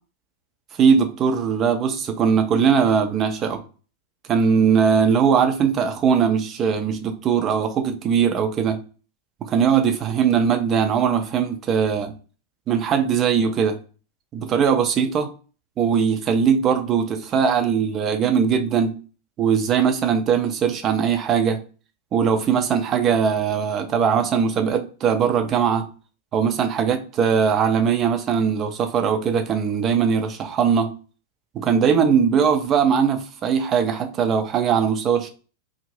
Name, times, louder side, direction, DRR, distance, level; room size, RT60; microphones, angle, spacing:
voice 1, 0.8-3.6 4.3-8.8 9.4-12.1 12.7-13.8 14.3-15.3 15.8-18.9 19.4-21.6 22.1-25.9 26.3-30.9 31.5-35.3, right 7 dB, 30° right, 0.5 m, -20 dB
2.5 x 2.0 x 3.0 m
figure-of-eight pair, 90°, 0 cm